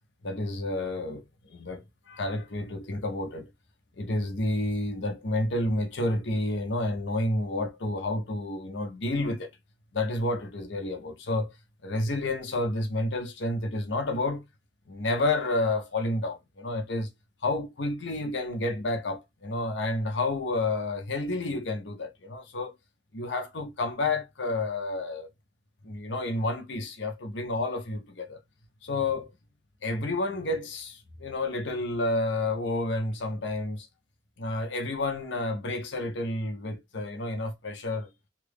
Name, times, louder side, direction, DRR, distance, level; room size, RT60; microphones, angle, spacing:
voice 1, 0.2-3.5 4.0-9.5 9.9-11.5 11.8-14.4 14.9-17.1 17.4-22.7 23.1-25.3 25.8-28.4 28.8-29.3 29.8-33.9 34.4-38.1, left 2 dB, 75° left, 0.7 m, -30 dB
2.8 x 2.5 x 3.3 m
head